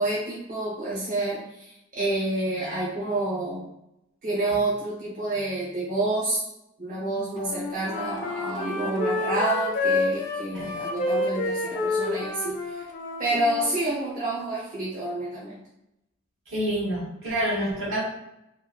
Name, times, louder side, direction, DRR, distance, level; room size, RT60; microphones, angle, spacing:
voice 1, 0.0-3.7 4.2-6.4 6.8-12.8 13.2-15.6, right 2 dB, 40° right, -8 dB, 0.6 m, -28 dB
Wind instrument woodwind instrument, 7.4-13.8, left 2 dB, 40° left, 0.4 m, -29 dB
voice 2, 16.5-18.0, right 1 dB, 70° right, -5 dB, 1.1 m, -28 dB
3.0 x 2.4 x 2.3 m, 0.85 s
head